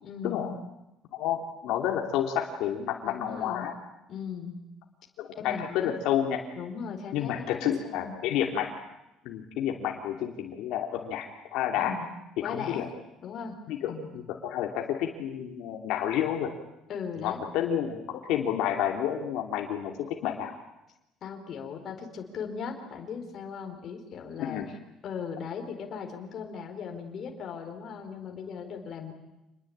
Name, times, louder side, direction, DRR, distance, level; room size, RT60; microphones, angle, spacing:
voice 1, 0.0-0.5 3.0-3.7 4.1-4.6 5.4-6.0 6.6-8.2 11.8-12.1 12.4-12.9 13.2-13.6 13.9-14.1 16.9-17.4 21.2-24.6 25.0-29.1, left 6 dB, 35° left, 3 dB, 4.5 m, -38 dB
voice 2, 1.1-3.7 5.2-6.4 7.1-8.8 9.2-11.9 12.4-12.9 13.7-16.5 17.2-20.6 24.4-24.7, left 10 dB, 65° left, 2 dB, 3.0 m, -30 dB
27.5 x 21.0 x 8.9 m, 0.92 s
cardioid pair, 175°, 0 cm